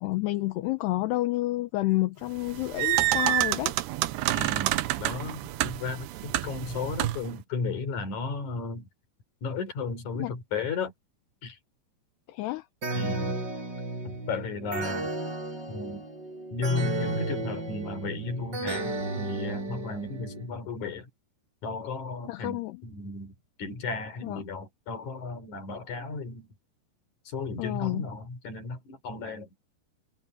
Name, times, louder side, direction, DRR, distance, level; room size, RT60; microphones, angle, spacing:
voice 1, 0.0-3.7 10.2-10.3 12.3-12.6 22.3-22.8 24.2-24.4 27.6-28.1, left 18 dB, 75° left, 2.9 m, -29 dB
sound 1, 2.4-7.3, right 15 dB, 80° right, 2.7 m, -28 dB
voice 2, 4.3-8.9 9.4-10.9 11.4-11.6 12.9-13.3 14.0-15.2 15.7-16.0 16.5-21.1 21.6-26.5 27.2-29.5, left 4 dB, 45° left, 4.8 m, -34 dB
sound 2, 12.8-20.5, right 2 dB, 25° right, 6.0 m, -33 dB
omnidirectional pair, 5.0 m